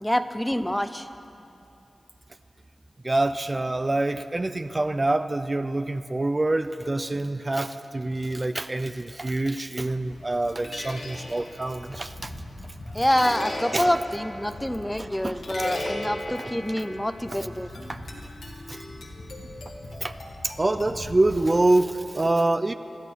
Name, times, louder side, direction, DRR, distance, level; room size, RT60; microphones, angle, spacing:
voice 1, 0.0-1.1 12.9-17.7, equal, 10° left, 10 dB, 0.8 m, -26 dB
voice 2, 3.0-12.3 13.7-13.9 15.0-15.4 15.7-15.8 17.9-18.0 18.7-18.8 20.0-20.1 20.4-22.7, right 2 dB, 35° right, 9 dB, 0.6 m, -26 dB
sound 1, 9.8-21.9, left 1 dB, 85° left, 2.3 m, -38 dB
22.0 x 13.5 x 4.6 m, 2.8 s
cardioid pair, 40°, 0 cm